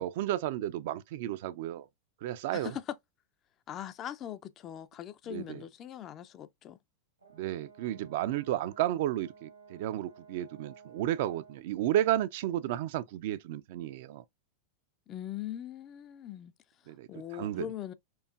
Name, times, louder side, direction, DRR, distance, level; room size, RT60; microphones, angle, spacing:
voice 1, 0.0-1.9 2.2-2.8 5.3-5.6 7.3-14.2 16.9-17.7, right 13 dB, 50° right, 0.3 m, -32 dB
voice 2, 2.5-2.8 3.7-6.8 15.1-16.5 17.1-17.9, left 11 dB, 30° left, 0.3 m, -41 dB
Brass instrument, 7.2-11.7, right 5 dB, 85° right, 1.4 m, -56 dB
4.5 x 2.5 x 2.3 m
figure-of-eight pair, 90°, 0 cm